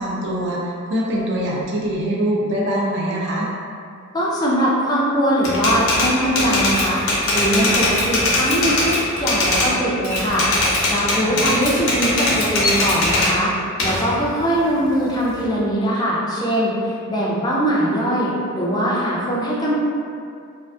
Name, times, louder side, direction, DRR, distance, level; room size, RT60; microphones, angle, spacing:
voice 1, 0.0-3.5 11.2-11.4 17.1-17.4, right 1 dB, 55° right, -3 dB, 0.4 m, -23 dB
voice 2, 4.1-7.0 7.3-10.4 10.9-13.5 13.8-19.7, equal, 20° left, -5 dB, 0.3 m, -21 dB
Typewriter, 5.4-9.7 10.0-13.3 13.8-15.5, left 2 dB, 80° left, 0.6 m, -20 dB
2.4 x 2.3 x 2.5 m, 2.4 s
head